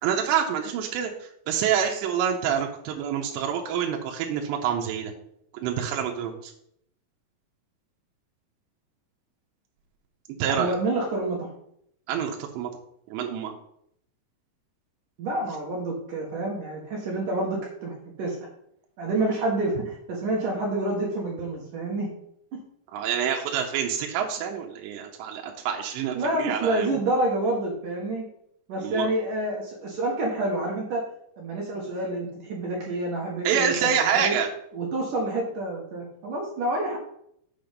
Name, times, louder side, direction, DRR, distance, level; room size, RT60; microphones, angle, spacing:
voice 1, 0.0-5.1 5.5-6.5 10.4-10.7 12.1-12.7 13.1-13.6 22.9-27.0 28.8-29.1 33.4-34.5, right 8 dB, 85° right, 2 dB, 3.1 m, -27 dB
voice 2, 10.5-11.5 15.2-18.4 19.0-22.1 26.2-28.3 28.7-31.0 31.4-34.4 34.7-37.0, right 2 dB, 60° right, -3 dB, 2.6 m, -28 dB
7.5 x 6.0 x 5.2 m, 0.72 s
omnidirectional pair, 4.9 m